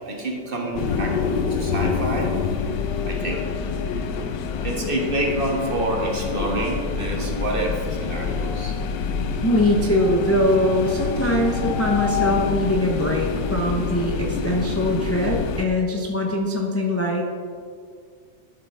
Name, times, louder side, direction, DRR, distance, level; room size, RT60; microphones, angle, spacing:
voice 1, 0.0-3.4 4.6-8.7, right 1 dB, 35° right, -1 dB, 1.4 m, -28 dB
sound 1, 0.7-15.6, left 5 dB, 85° left, 1.3 m, -26 dB
voice 2, 9.4-17.3, left 1 dB, 20° left, -1 dB, 0.4 m, -22 dB
12.0 x 7.0 x 3.5 m, 2.1 s
omnidirectional pair, 1.8 m